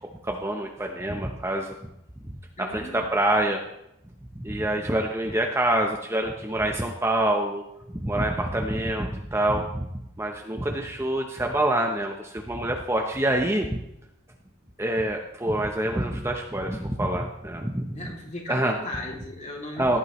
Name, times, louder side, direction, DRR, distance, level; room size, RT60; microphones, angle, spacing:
voice 1, 0.2-1.7 2.2-2.3 2.6-3.6 4.4-7.6 7.9-9.9 10.2-13.8 14.8-18.0 18.5-18.7 19.8-20.0, right 1 dB, 10° right, 2 dB, 0.9 m, -26 dB
voice 2, 2.6-3.1 17.9-20.0, left 2 dB, 35° left, -1 dB, 2.7 m, -37 dB
17.0 x 11.0 x 3.2 m, 0.82 s
head